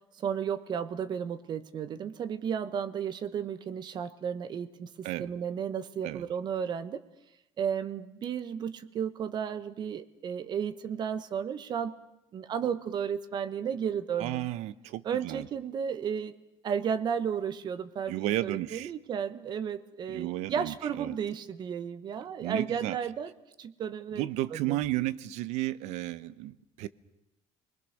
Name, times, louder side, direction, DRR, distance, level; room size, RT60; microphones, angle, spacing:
voice 1, 0.2-7.0 7.6-11.9 12.3-14.5 15.0-16.3 16.6-23.3 23.6-24.3 24.5-24.8, right 7 dB, 40° right, 12 dB, 1.0 m, -33 dB
voice 2, 14.2-15.5 18.1-18.9 20.1-21.1 22.4-23.0 24.1-26.9, right 15 dB, 75° right, 16 dB, 0.9 m, -33 dB
29.5 x 21.0 x 6.5 m, 0.85 s
cardioid pair, 155°, 11 cm